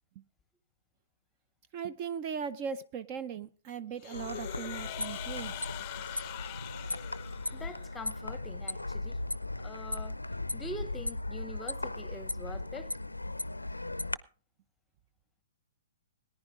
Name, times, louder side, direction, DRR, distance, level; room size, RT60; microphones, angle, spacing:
voice 1, 1.7-5.7, right 7 dB, 35° right, 0.6 m, -38 dB
sound 1, 4.0-8.1, left 15 dB, 35° left, 0.5 m, -43 dB
sound 2, 4.1-14.2, left 2 dB, 90° left, 0.5 m, -37 dB
voice 2, 7.5-9.2 9.6-10.2 10.5-12.9, left 1 dB, 10° left, 0.9 m, -44 dB
18.5 x 10.0 x 3.6 m
figure-of-eight pair, 115°, 0 cm